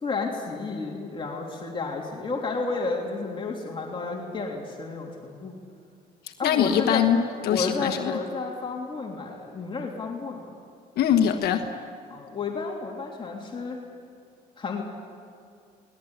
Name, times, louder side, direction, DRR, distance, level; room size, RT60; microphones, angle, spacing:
voice 1, 0.0-5.5 6.4-7.0 7.5-10.4 12.1-13.8 14.6-14.8, left 4 dB, 30° left, -1 dB, 3.2 m, -31 dB
voice 2, 6.4-8.2 11.0-11.7, left 9 dB, 70° left, 5 dB, 1.4 m, -23 dB
23.5 x 19.5 x 9.0 m, 2.3 s
cardioid pair, 110°, 17 cm